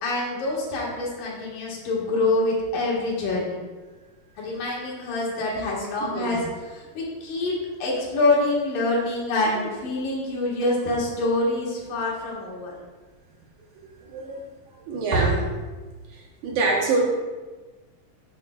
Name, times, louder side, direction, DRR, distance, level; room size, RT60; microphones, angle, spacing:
voice 1, 0.0-3.6 4.4-6.4 6.7-12.7, left 2 dB, 80° left, -4 dB, 3.2 m, -26 dB
voice 2, 6.0-6.4 9.4-9.6 14.0-14.4 14.9-15.5 16.1-17.0, right 3 dB, 70° right, -2 dB, 2.5 m, -25 dB
11.5 x 6.1 x 2.3 m, 1.3 s
omnidirectional pair, 3.9 m